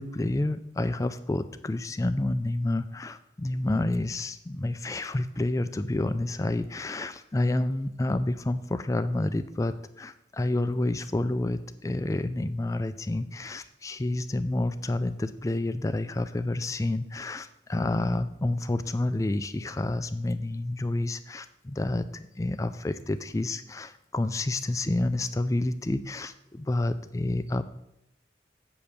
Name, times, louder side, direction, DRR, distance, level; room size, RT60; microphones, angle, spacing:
voice 1, 0.0-27.6, left 2 dB, 15° left, 12 dB, 0.3 m, -29 dB
7.9 x 5.1 x 7.2 m, 0.82 s
head